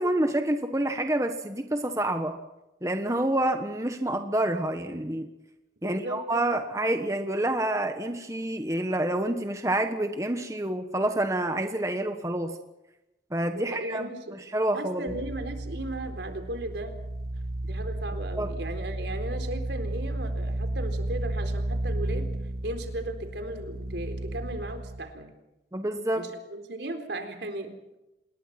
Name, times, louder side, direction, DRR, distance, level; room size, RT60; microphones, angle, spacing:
voice 1, 0.0-2.4 2.8-5.3 5.8-12.6 13.3-14.0 14.3-15.1 18.4-18.5 25.7-26.2, right 1 dB, 15° right, 6 dB, 1.3 m, -28 dB
voice 2, 5.8-6.2 13.4-14.4 14.7-16.9 17.6-22.3 22.6-25.3 26.2-28.0, right 1 dB, 70° right, 6 dB, 4.1 m, -36 dB
sound 1, 15.1-25.0, right 1 dB, 55° right, 1.6 m, -33 dB
27.5 x 21.0 x 6.0 m, 0.97 s
head